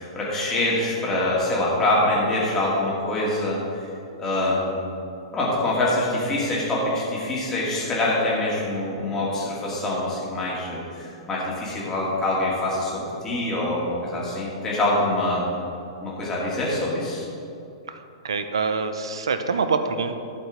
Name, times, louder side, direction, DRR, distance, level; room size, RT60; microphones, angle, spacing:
voice 1, 0.0-3.6 4.2-4.8 5.3-15.5 16.0-17.2, left 1 dB, 20° left, -6 dB, 2.4 m, -25 dB
voice 2, 18.2-20.2, right 4 dB, 70° right, 9 dB, 0.7 m, -25 dB
11.5 x 5.4 x 5.2 m, 2.6 s
figure-of-eight pair, 105°, 3 cm